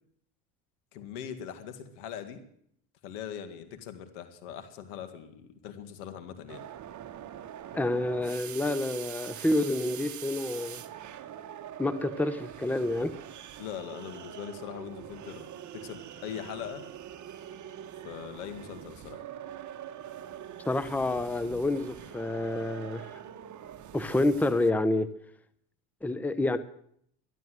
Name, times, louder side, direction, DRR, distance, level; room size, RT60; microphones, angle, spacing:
voice 1, 0.9-2.4 3.0-6.6 13.6-16.8 18.0-19.2, left 9 dB, 85° left, 2.2 m, -41 dB
sound 1, 6.5-24.7, right 10 dB, 40° right, 1.3 m, -44 dB
voice 2, 7.7-10.8 11.8-13.1 20.6-23.2 23.9-25.1 26.0-26.6, left 2 dB, 5° left, 0.8 m, -28 dB
12.5 x 12.0 x 7.8 m
supercardioid pair, 95°, 45 cm